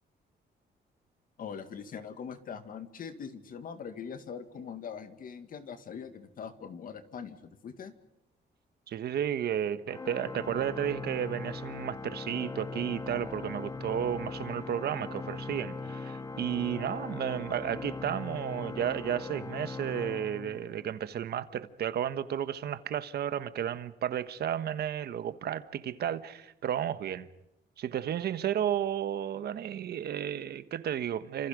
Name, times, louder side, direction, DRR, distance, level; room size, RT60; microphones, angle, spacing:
voice 1, 1.4-7.9, left 6 dB, 50° left, 2.2 m, -42 dB
voice 2, 8.9-27.3 27.8-31.5, right 9 dB, 65° right, 1.4 m, -33 dB
Organ, 9.9-21.1, left 3 dB, 15° left, 1.1 m, -40 dB
30.0 x 27.0 x 5.3 m
cardioid pair, 160°, 18 cm